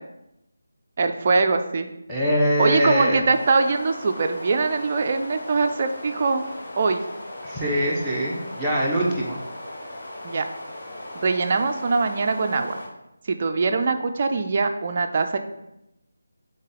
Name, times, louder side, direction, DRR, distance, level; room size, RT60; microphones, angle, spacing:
voice 1, 1.0-1.9 2.6-6.4 6.8-7.0 10.2-10.5 11.1-12.8 13.3-15.4, right 4 dB, 35° right, 6 dB, 0.3 m, -22 dB
voice 2, 2.1-3.2 7.4-9.4, equal, ahead, -10 dB, 0.7 m, -23 dB
sound 1, 3.2-12.9, left 1 dB, 45° left, 0.8 m, -38 dB
3.9 x 3.5 x 3.8 m, 0.88 s
figure-of-eight pair, 155°, 0 cm